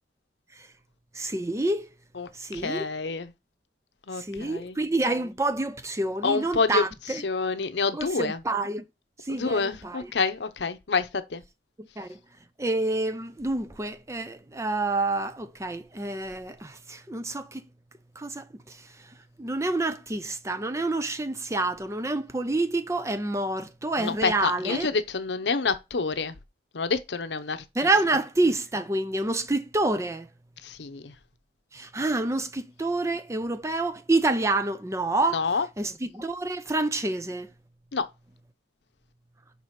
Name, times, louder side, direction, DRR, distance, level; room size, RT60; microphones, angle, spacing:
voice 1, 1.1-1.9 2.3-2.9 4.1-7.2 7.9-8.8 9.2-10.1 11.8-12.2 12.6-17.6 18.2-24.9 27.7-30.3 31.7-35.4 35.8-37.5, right 2 dB, 15° right, 0.5 m, -28 dB
voice 2, 2.2-3.3 4.1-4.8 6.2-6.8 7.2-8.4 9.3-11.4 24.0-26.3 26.7-27.6 30.6-31.1 35.3-35.7 37.9-38.0, left 4 dB, 75° left, 0.8 m, -28 dB
5.5 x 4.8 x 5.7 m
head